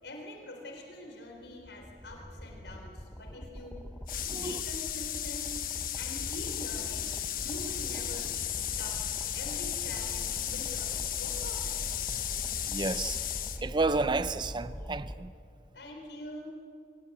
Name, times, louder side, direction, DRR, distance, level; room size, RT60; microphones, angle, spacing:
voice 1, 0.0-3.9 4.2-5.6 5.9-7.1 7.4-9.0 9.3-12.0 15.7-16.5, left 1 dB, 80° left, 3.9 m, -44 dB
sound 1, 1.4-15.2, equal, 10° left, 0.9 m, -43 dB
sound 2, 4.1-13.6, left 11 dB, 50° left, 1.2 m, -35 dB
voice 2, 4.3-4.6 12.7-13.2 13.6-15.3, right 3 dB, 25° right, 0.6 m, -31 dB
23.5 x 18.0 x 8.6 m
head